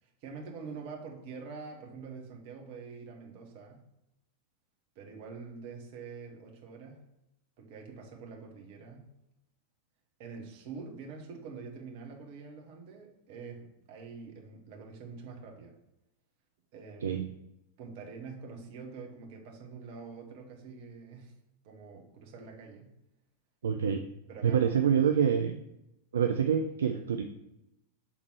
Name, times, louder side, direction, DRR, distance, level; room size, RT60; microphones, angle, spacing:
voice 1, 0.0-3.9 4.9-7.0 7.6-9.1 10.2-15.7 16.7-17.2 17.8-21.3 21.6-22.9 24.3-24.9, right 5 dB, 45° right, 0 dB, 1.3 m, -46 dB
voice 2, 17.0-17.3 23.6-24.0 24.4-25.6 26.1-27.2, right 8 dB, 65° right, 5 dB, 0.4 m, -26 dB
6.1 x 3.6 x 4.6 m, 0.88 s
figure-of-eight pair, 90°, 0 cm